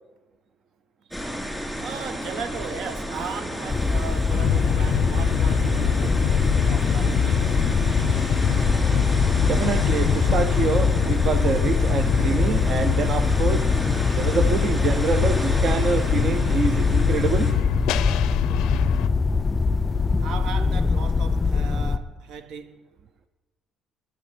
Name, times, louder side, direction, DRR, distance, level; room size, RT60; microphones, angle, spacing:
sound 1, 1.1-17.5, equal, 5° right, 2.4 m, -32 dB
voice 1, 1.8-7.6 20.2-22.9, right 6 dB, 65° right, 0.8 m, -37 dB
sound 2, 3.7-22.0, left 4 dB, 15° left, 0.3 m, -23 dB
sound 3, 4.3-19.1, left 12 dB, 90° left, 0.5 m, -26 dB
voice 2, 9.4-13.7 14.1-17.5, right 5 dB, 40° right, 0.5 m, -26 dB
10.0 x 9.4 x 7.2 m
cardioid pair, 180°, 0 cm